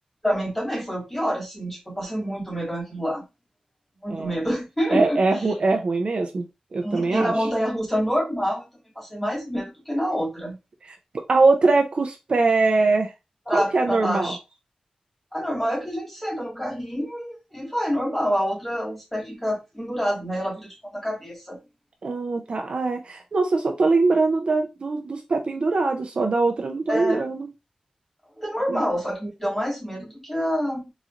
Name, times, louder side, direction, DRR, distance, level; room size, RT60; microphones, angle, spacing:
voice 1, 0.2-3.2 4.0-5.2 6.8-8.6 9.0-10.6 13.5-14.4 15.3-21.6 26.9-27.2 28.4-30.9, equal, 10° left, 1.9 m, -27 dB
voice 2, 4.9-6.4 6.7-7.3 10.9-11.0 11.3-13.1 13.5-14.4 22.0-27.5 28.7-28.8, right 3 dB, 50° right, 0.5 m, -22 dB
3.8 x 3.1 x 2.5 m
wide cardioid pair, 130°, 2 cm